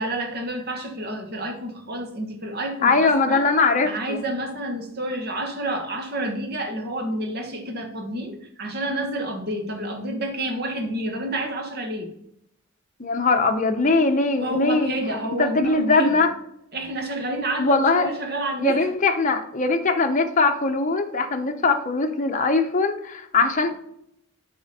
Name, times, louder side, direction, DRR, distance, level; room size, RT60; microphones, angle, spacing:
voice 1, 0.0-3.5 3.8-12.1 14.4-16.2 16.7-18.9, right 1 dB, 50° right, 4 dB, 1.3 m, -29 dB
voice 2, 2.8-4.2 13.0-14.9 15.4-16.3 17.6-18.1 18.6-23.8, left 3 dB, 35° left, 5 dB, 0.7 m, -21 dB
8.5 x 5.0 x 4.1 m, 0.77 s
head